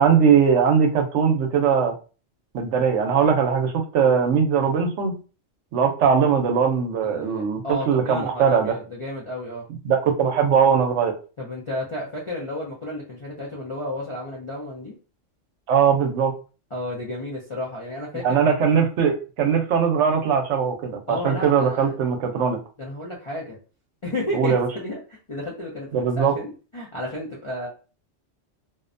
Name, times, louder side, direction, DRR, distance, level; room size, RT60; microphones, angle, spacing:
voice 1, 0.0-1.9 2.5-5.1 5.7-8.7 9.8-11.1 15.7-16.3 18.1-22.6 24.3-24.7 25.9-26.3, right 6 dB, 75° right, 4 dB, 0.9 m, -20 dB
voice 2, 7.0-9.6 11.4-14.9 16.7-18.5 21.1-22.0 22.8-23.6 24.0-25.0 25.3-27.7, left 1 dB, 40° left, -5 dB, 0.4 m, -32 dB
2.5 x 2.1 x 2.5 m, 0.34 s
omnidirectional pair, 1.3 m